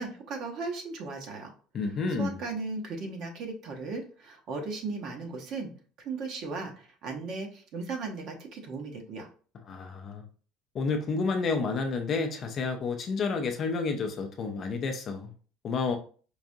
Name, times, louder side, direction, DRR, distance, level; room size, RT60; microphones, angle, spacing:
voice 1, 0.0-1.5 2.2-5.7 6.0-9.3, right 3 dB, 45° right, 0.8 m, -36 dB
voice 2, 1.7-2.4 9.7-10.2 10.7-15.3 15.6-16.0, left 4 dB, 30° left, 0.4 m, -30 dB
4.7 x 2.4 x 2.6 m
cardioid pair, 170°, 0 cm